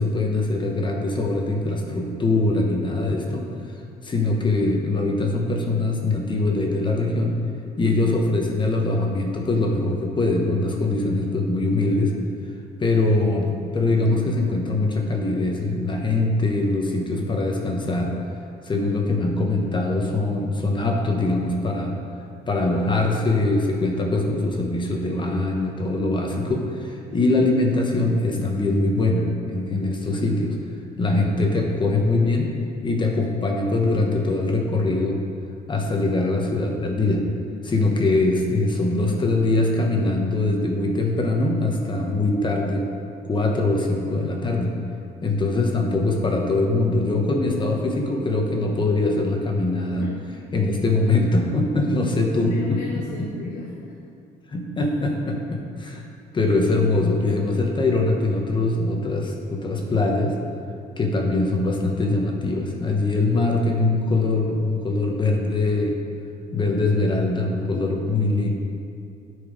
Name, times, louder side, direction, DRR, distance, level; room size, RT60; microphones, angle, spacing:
voice 1, 0.0-3.4 4.0-7.4 7.8-12.1 12.8-18.1 18.6-21.9 22.5-30.6 31.0-32.5 32.8-35.2 35.7-37.2 37.6-42.8 43.2-44.7 45.2-50.1 50.5-52.8 53.2-53.5 54.5-56.0 56.3-60.3 61.0-66.0 66.5-68.5, left 2 dB, 30° left, 1 dB, 1.1 m, -22 dB
voice 2, 52.0-53.9, left 5 dB, 85° left, -7 dB, 1.7 m, -35 dB
10.0 x 4.7 x 5.0 m, 2.4 s
cardioid pair, 110°, 17 cm